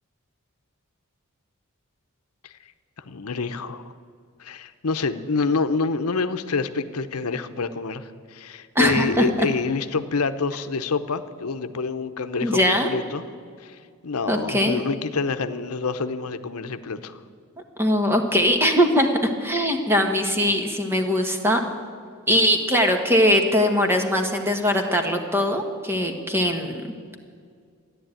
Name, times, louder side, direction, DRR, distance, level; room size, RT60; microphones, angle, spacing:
voice 1, 3.1-3.9 4.4-13.2 13.6-17.2, left 4 dB, 85° left, 10 dB, 0.8 m, -27 dB
voice 2, 8.7-9.5 12.4-12.9 14.3-14.8 17.8-21.6 22.3-26.8, equal, 10° right, 4 dB, 1.4 m, -21 dB
14.0 x 10.5 x 9.0 m, 2.1 s
head